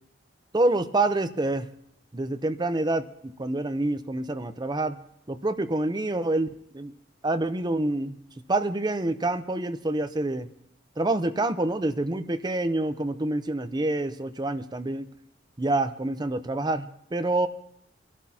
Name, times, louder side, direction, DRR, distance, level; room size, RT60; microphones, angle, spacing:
voice 1, 0.5-1.7 2.1-5.0 5.3-6.5 6.7-6.9 7.2-8.2 8.5-10.5 11.0-15.1 15.6-17.5, right 2 dB, 25° right, 10 dB, 0.7 m, -27 dB
25.0 x 12.0 x 2.8 m, 0.76 s
head